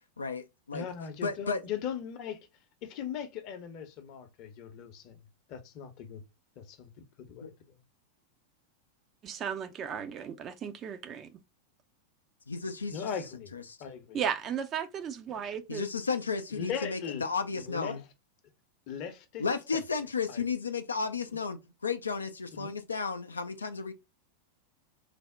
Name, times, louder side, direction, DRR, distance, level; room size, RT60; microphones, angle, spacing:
voice 1, 0.2-0.9 1.2-1.6 7.4-7.5 12.5-13.1 13.5-13.8 15.7-18.0 19.4-23.9, left 5 dB, 75° left, 0.4 m, -33 dB
voice 2, 0.7-2.5 2.8-5.2 5.5-6.2 6.6-6.9 7.2-7.8 12.9-13.5 13.8-14.2 16.5-17.2 17.6-18.0 18.9-19.4 20.3-20.4 22.6-22.8, left 8 dB, 40° left, 0.7 m, -39 dB
voice 3, 9.2-11.4 14.1-15.8, right 8 dB, 30° right, 0.4 m, -35 dB
3.3 x 2.1 x 3.6 m
figure-of-eight pair, 90°, 0 cm